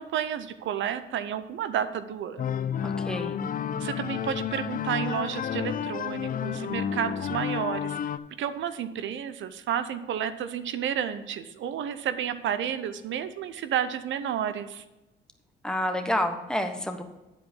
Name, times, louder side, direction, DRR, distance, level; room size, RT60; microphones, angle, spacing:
voice 1, 0.0-2.5 3.8-8.0 8.4-14.8, right 9 dB, 70° right, 12 dB, 0.6 m, -31 dB
sound 1, 2.4-8.2, left 8 dB, 45° left, 0.5 m, -31 dB
voice 2, 2.8-3.4 15.6-17.0, left 1 dB, 5° left, 5 dB, 1.1 m, -29 dB
10.5 x 4.8 x 6.1 m, 1.0 s
cardioid pair, 90°, 20 cm